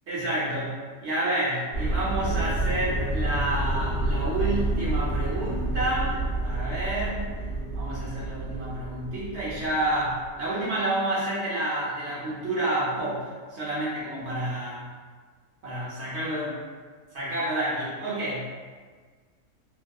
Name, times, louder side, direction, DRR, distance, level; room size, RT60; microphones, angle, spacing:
voice 1, 0.1-6.1 6.4-7.3 7.7-14.9 15.6-16.6 17.1-18.5, right 1 dB, 60° right, -8 dB, 0.7 m, -29 dB
sound 1, 1.7-10.3, right 2 dB, 35° left, 0.9 m, -29 dB
2.8 x 2.1 x 2.3 m, 1.5 s
omnidirectional pair, 1.6 m